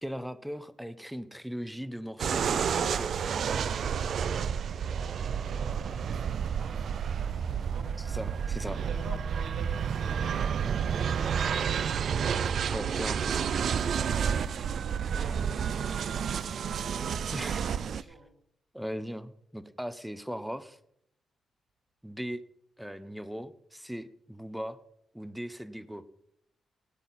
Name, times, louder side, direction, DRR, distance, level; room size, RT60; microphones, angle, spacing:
voice 1, 0.0-3.2 8.0-8.8 12.7-13.5 17.3-17.6 17.9-18.2 18.7-20.8 22.0-22.4 22.8-24.8 25.1-26.0, equal, ahead, 13 dB, 0.8 m, -38 dB
sound 1, 2.2-18.0, right 7 dB, 60° right, 0.4 m, -30 dB
voice 2, 4.8-7.9 8.6-11.8 15.1-16.2 16.6-18.3, right 2 dB, 80° right, 2 dB, 2.8 m, -48 dB
17.0 x 9.8 x 4.2 m, 0.73 s
cardioid pair, 130°, 0 cm